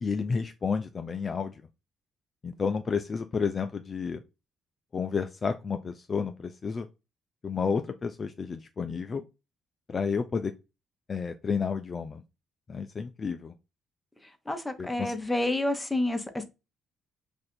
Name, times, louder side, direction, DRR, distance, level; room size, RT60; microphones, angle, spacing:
voice 1, 0.0-1.6 2.4-4.2 4.9-6.9 7.4-9.2 9.9-10.5 11.1-12.2 12.7-13.5 14.8-15.1, left 5 dB, 40° left, 0.3 m, -31 dB
voice 2, 14.5-16.4, left 1 dB, 10° left, 0.8 m, -29 dB
2.6 x 2.4 x 4.2 m
supercardioid pair, 60°, 0 cm